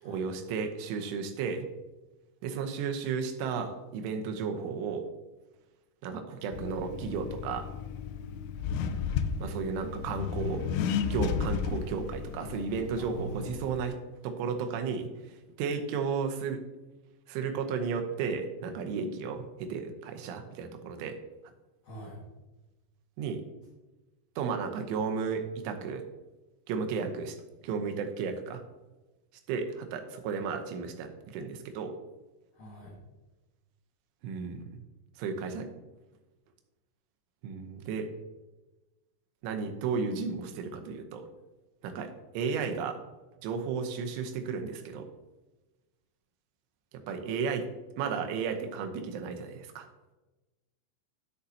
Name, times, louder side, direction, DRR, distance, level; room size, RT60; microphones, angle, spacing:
voice 1, 0.0-1.7 2.4-5.1 6.0-7.7 9.4-10.7 11.1-14.0 14.2-15.1 15.6-16.6 17.3-21.2 23.2-23.4 24.4-26.0 26.7-27.4 27.6-28.6 29.5-31.9 34.2-34.8 35.2-35.7 37.4-38.1 39.4-41.3 41.8-43.0 43.4-45.1 47.1-47.7 48.0-49.9, right 5 dB, 80° right, 5 dB, 3.2 m, -33 dB
Accelerating revving vroom, 6.5-13.9, left 6 dB, 85° left, 2.6 m, -34 dB
voice 2, 13.0-13.6 21.8-22.2 32.5-32.9, equal, 60° left, -5 dB, 2.5 m, -43 dB
12.5 x 6.6 x 2.8 m, 1.1 s
omnidirectional pair, 5.6 m